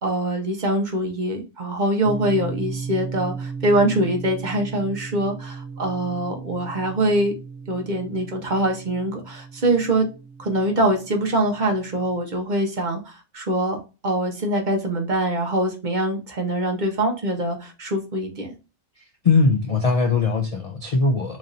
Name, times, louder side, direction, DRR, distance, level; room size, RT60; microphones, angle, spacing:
voice 1, 0.0-7.3 7.7-10.1 10.4-18.5, right 1 dB, 45° right, 0.8 m, -24 dB
sound 1, 2.0-12.2, right 5 dB, 75° right, 1.1 m, -36 dB
voice 2, 19.0-21.4, left 4 dB, 55° left, 0.4 m, -21 dB
3.0 x 2.6 x 3.8 m
omnidirectional pair, 1.2 m